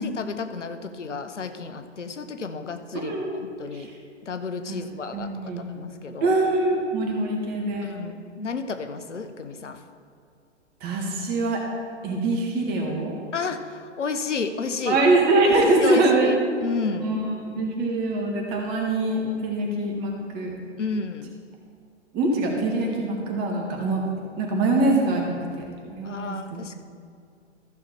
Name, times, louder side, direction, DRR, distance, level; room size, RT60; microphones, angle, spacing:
voice 1, 0.0-3.9 4.2-6.3 7.8-9.8 13.3-15.0 15.4-16.4 16.6-17.1 20.8-21.3 26.0-26.7, left 4 dB, 75° left, 9 dB, 0.9 m, -32 dB
voice 2, 2.9-3.4 3.7-3.9 4.7-4.8 5.1-5.6 6.2-7.9 10.8-11.6 12.0-13.2 14.9-16.3 17.0-17.2 17.6-20.6 22.1-24.0 24.4-26.6, right 2 dB, 25° right, 0 dB, 1.8 m, -23 dB
14.0 x 6.4 x 4.5 m, 2.3 s
figure-of-eight pair, 120°, 36 cm